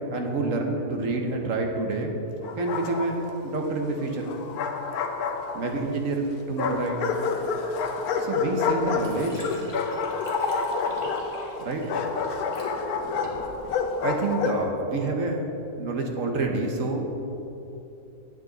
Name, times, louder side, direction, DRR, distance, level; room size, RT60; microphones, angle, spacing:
voice 1, 0.1-2.1 2.5-4.3 5.5-7.0 8.2-9.4 11.6-11.8 14.0-15.4 15.8-17.2, right 3 dB, 60° right, 2 dB, 1.2 m, -28 dB
Bark, 2.4-3.3 4.3-5.9 6.6-14.7, left 5 dB, 75° left, 1.2 m, -29 dB
Liquid, 8.2-8.3 8.7-12.7 13.2-13.7, left 2 dB, 20° left, 1.5 m, -35 dB
9.1 x 8.2 x 3.9 m, 3.0 s
omnidirectional pair, 1.6 m